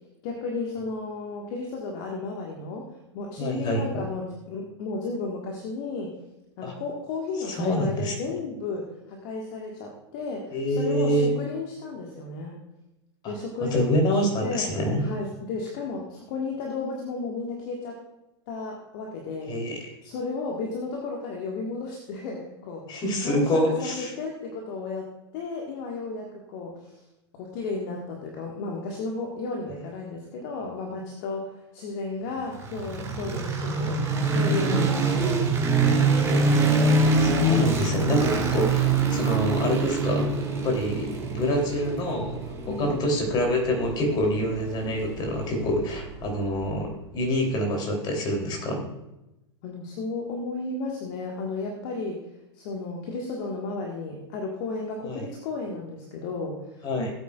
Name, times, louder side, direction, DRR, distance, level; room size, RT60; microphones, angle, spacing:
voice 1, 0.2-2.9 3.1-6.1 6.6-12.6 13.3-14.0 14.4-14.7 15.0-18.0 18.5-19.6 20.0-27.0 27.3-36.8 42.7-43.0 49.6-52.2 52.5-56.6 56.9-57.1, left 3 dB, 45° left, 0 dB, 1.7 m, -34 dB
voice 2, 3.4-4.0 6.6-6.7 7.5-8.1 10.5-11.3 13.2-13.3 13.6-15.0 19.5-19.8 22.9-24.1 37.2-40.3 40.6-42.4 42.7-48.8 55.0-55.2 56.8-57.1, equal, 30° left, 1 dB, 3.3 m, -26 dB
sound 1, 32.5-46.7, right 3 dB, 20° right, 2.9 m, -25 dB
17.5 x 8.7 x 2.4 m, 0.93 s
figure-of-eight pair, 90°, 15 cm